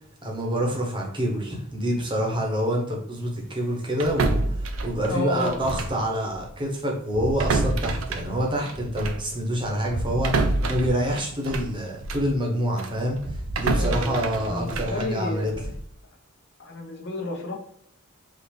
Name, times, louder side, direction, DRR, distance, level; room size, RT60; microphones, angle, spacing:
voice 1, 0.2-15.5, equal, 20° right, 0 dB, 1.2 m, -27 dB
sound 1, 4.0-6.0 6.3-6.5 7.1-12.3 12.8-15.8, right 2 dB, 65° right, 0.6 m, -28 dB
voice 2, 5.1-5.6 13.8-15.7 16.6-17.5, left 1 dB, 50° left, 0 dB, 1.1 m, -31 dB
5.6 x 2.8 x 3.4 m, 0.70 s
head